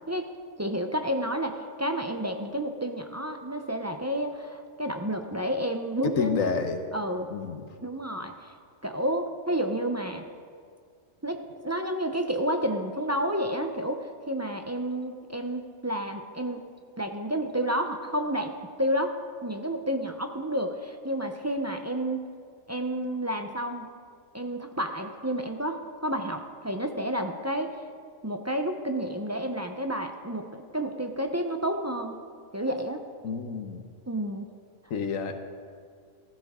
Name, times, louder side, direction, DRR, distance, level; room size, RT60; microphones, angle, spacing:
voice 1, 0.6-6.5 6.9-7.3 7.8-8.5 8.8-10.2 11.2-16.6 17.0-18.5 18.8-19.2 19.4-22.2 22.7-23.9 24.3-27.8 28.2-32.2 32.5-33.0 34.1-34.5, right 1 dB, 20° right, 4 dB, 0.5 m, -30 dB
voice 2, 6.2-6.8 7.3-7.6 33.2-33.8 34.9-35.3, left 5 dB, 80° left, 6 dB, 1.3 m, -29 dB
15.5 x 15.0 x 3.7 m, 2.1 s
omnidirectional pair, 1.4 m